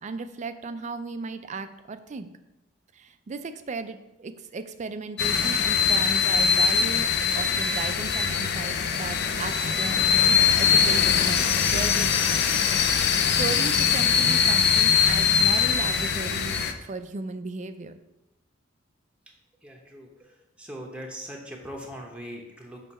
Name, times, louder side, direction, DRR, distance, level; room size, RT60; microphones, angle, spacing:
voice 1, 0.0-2.3 3.0-10.0 10.3-12.4 13.3-16.6 16.8-17.9, right 3 dB, 35° right, 10 dB, 0.4 m, -36 dB
sound 1, 5.2-16.7, left 7 dB, 55° left, 0.5 m, -22 dB
voice 2, 19.6-22.8, equal, 5° right, 0 dB, 0.8 m, -41 dB
6.3 x 3.3 x 5.5 m, 0.92 s
head